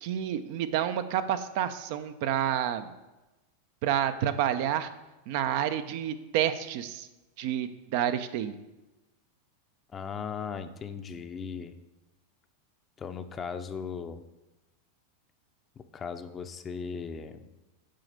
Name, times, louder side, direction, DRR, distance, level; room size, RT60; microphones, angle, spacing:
voice 1, 0.0-2.9 3.8-4.9 5.3-7.1 7.4-8.5, right 10 dB, 60° right, 10 dB, 0.7 m, -29 dB
voice 2, 9.9-11.8 13.0-14.2 15.8-17.5, left 6 dB, 25° left, 9 dB, 0.7 m, -37 dB
7.6 x 5.0 x 6.6 m, 1.0 s
hypercardioid pair, 110°, 0 cm